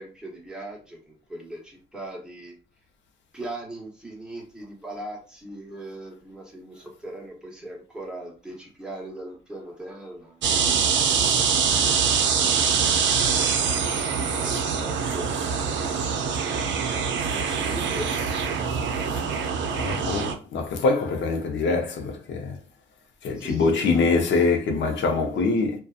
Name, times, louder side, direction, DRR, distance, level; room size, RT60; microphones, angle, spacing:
voice 1, 0.0-2.5 3.3-11.3 14.4-15.4 17.3-18.1 23.3-24.0 25.3-25.5, right 1 dB, 5° right, 0.9 m, -39 dB
sound 1, 10.4-20.3, right 6 dB, 70° right, 0.5 m, -24 dB
voice 2, 19.8-22.5 23.2-25.7, left 4 dB, 65° left, 0.7 m, -24 dB
2.6 x 2.3 x 2.4 m
cardioid pair, 90°, 20 cm